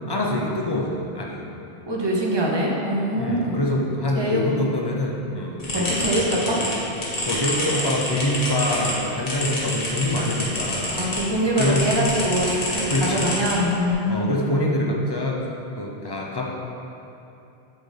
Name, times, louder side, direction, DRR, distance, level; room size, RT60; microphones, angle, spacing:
voice 1, 0.1-1.4 3.2-6.3 7.3-11.0 11.6-11.9 12.9-13.3 14.1-15.4 15.8-16.5, left 1 dB, 30° left, -1 dB, 0.5 m, -25 dB
voice 2, 1.9-3.5 4.1-4.4 5.7-6.6 10.9-14.4, equal, 25° right, -3 dB, 0.7 m, -24 dB
sound 1, 5.6-11.2 11.6-13.9, left 1 dB, 60° left, 1.5 m, -28 dB
8.3 x 3.9 x 3.3 m, 2.8 s
omnidirectional pair, 1.1 m